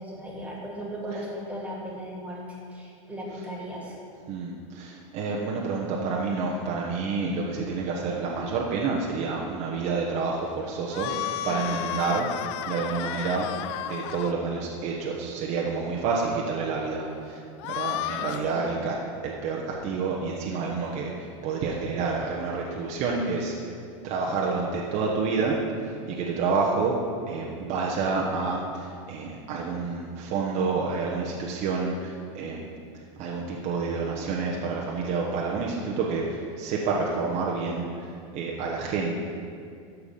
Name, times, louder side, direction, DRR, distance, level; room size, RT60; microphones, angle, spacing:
voice 1, 0.0-4.0 11.5-11.8 18.2-18.8, equal, 10° right, -3 dB, 2.4 m, -37 dB
voice 2, 4.3-13.5 13.9-18.9 19.2-23.7 24.0-27.0 27.3-32.7 33.2-39.2, right 4 dB, 45° right, -2 dB, 1.3 m, -29 dB
sound 1, 10.9-14.3 17.6-18.4, left 13 dB, 55° left, 0.4 m, -32 dB
13.0 x 4.8 x 6.8 m, 2.3 s
supercardioid pair, 140°, 17 cm